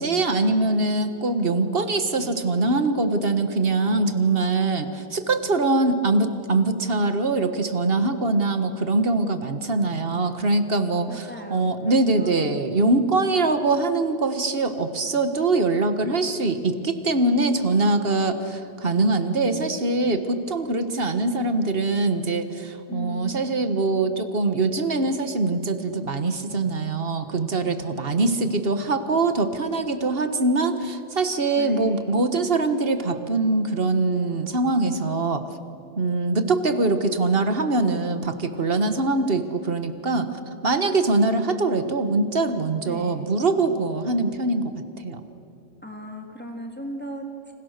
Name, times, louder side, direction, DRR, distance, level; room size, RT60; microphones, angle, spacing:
voice 1, 0.0-35.4 36.0-40.3 40.6-44.7 45.0-45.2, right 3 dB, 50° right, 9 dB, 1.6 m, -23 dB
voice 2, 11.1-12.6 22.9-23.6 31.6-32.2 42.8-43.3 45.8-47.5, equal, 10° left, 2 dB, 3.1 m, -38 dB
29.5 x 27.5 x 6.7 m, 2.6 s
omnidirectional pair, 1.3 m